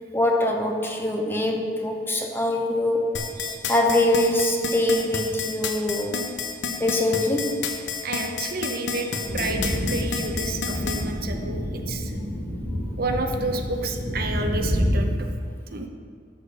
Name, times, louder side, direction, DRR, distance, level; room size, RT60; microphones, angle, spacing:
voice 1, 0.1-3.2 3.7-6.2 6.8-7.6, left 1 dB, 10° left, 1 dB, 0.8 m, -23 dB
sound 1, 3.1-11.0, left 5 dB, 70° left, 0.9 m, -29 dB
voice 2, 8.0-12.2 13.0-15.3 15.7-15.9, right 2 dB, 50° right, 4 dB, 0.8 m, -30 dB
sound 2, 9.2-15.0, equal, 20° right, 1.8 m, -28 dB
12.5 x 4.4 x 6.8 m, 2.1 s
head